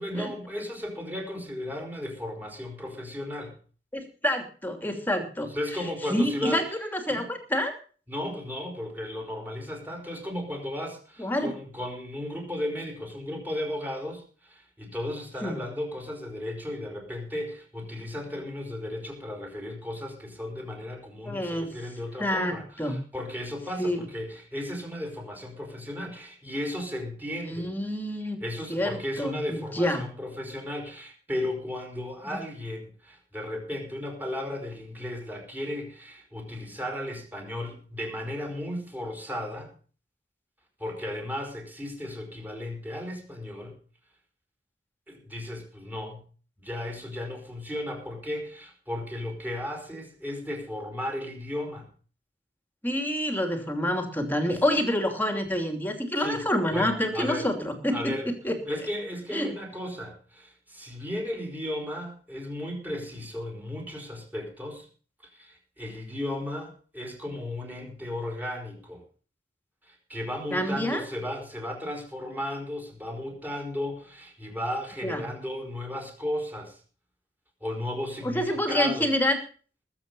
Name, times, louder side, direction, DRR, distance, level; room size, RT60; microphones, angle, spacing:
voice 1, 0.0-3.6 5.4-6.6 7.1-7.3 8.1-27.7 28.4-39.7 40.8-43.8 45.1-46.2 46.6-51.9 54.5-54.8 56.2-56.5 56.7-57.5 57.9-58.3 58.6-64.9 65.3-69.0 69.8-76.8 77.6-79.1, left 1 dB, 10° right, 2 dB, 4.9 m, -35 dB
voice 2, 3.9-5.5 6.1-7.7 11.2-11.5 15.4-15.6 21.3-21.7 22.2-23.0 23.8-24.1 27.4-28.4 28.7-30.0 32.2-32.4 52.8-58.6 59.3-59.5 70.5-71.0 75.0-75.2 78.2-79.4, left 1 dB, 10° left, 6 dB, 2.8 m, -27 dB
20.0 x 8.3 x 5.4 m, 0.40 s
head